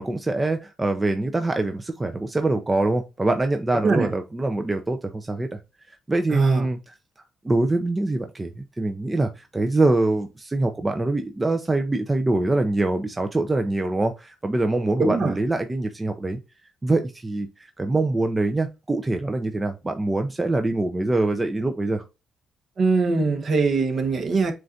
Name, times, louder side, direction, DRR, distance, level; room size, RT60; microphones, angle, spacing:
voice 1, 0.0-5.6 6.1-6.9 7.4-16.4 16.8-17.5 17.8-22.0, right 2 dB, 20° right, 0.6 m, -24 dB
voice 2, 6.3-6.7 15.0-15.4 22.8-24.5, right 4 dB, 50° right, 1.2 m, -22 dB
7.6 x 2.6 x 2.7 m
cardioid pair, 90°, 0 cm